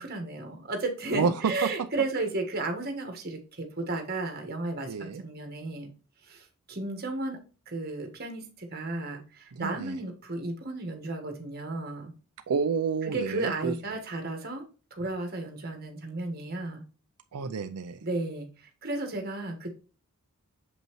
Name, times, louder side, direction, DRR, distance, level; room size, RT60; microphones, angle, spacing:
voice 1, 0.0-5.9 6.3-7.4 7.7-12.1 13.0-14.6 14.9-16.8 18.0-19.8, right 2 dB, 45° right, 4 dB, 1.5 m, -34 dB
voice 2, 1.1-1.5 4.9-5.2 9.5-10.0 12.5-13.7 17.3-18.0, right 5 dB, 85° right, 8 dB, 0.4 m, -29 dB
7.4 x 5.4 x 3.1 m, 0.36 s
head